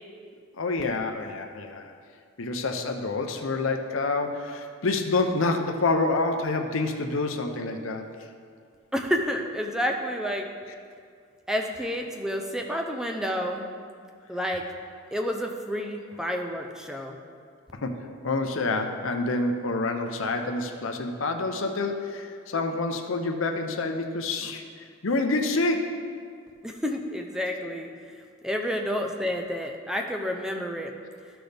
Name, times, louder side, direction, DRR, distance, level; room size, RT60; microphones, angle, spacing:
voice 1, 0.5-1.9 2.4-8.0 17.7-26.0, left 3 dB, 75° left, 5 dB, 0.7 m, -27 dB
voice 2, 8.9-10.5 11.5-13.6 14.3-14.6 15.1-17.2 26.6-27.9 28.4-30.9, equal, 5° right, 2 dB, 0.5 m, -29 dB
13.5 x 6.1 x 3.4 m, 2.2 s
head